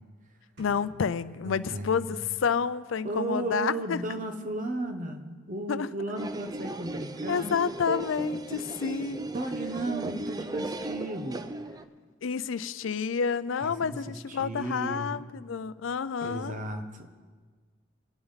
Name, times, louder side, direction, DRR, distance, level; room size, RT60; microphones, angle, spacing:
voice 1, 0.6-4.0 5.7-5.9 7.3-9.3 12.2-16.6, left 6 dB, 75° left, 16 dB, 0.5 m, -29 dB
sound 1, 0.6-2.5, left 1 dB, 60° right, 2.5 m, -52 dB
voice 2, 1.4-2.2 3.0-7.5 9.3-11.5 13.6-15.2 16.2-17.1, right 2 dB, 40° right, 5 dB, 1.2 m, -35 dB
sound 2, 6.2-11.8, right 2 dB, 20° right, 0.5 m, -36 dB
23.5 x 8.8 x 4.1 m, 1.5 s
head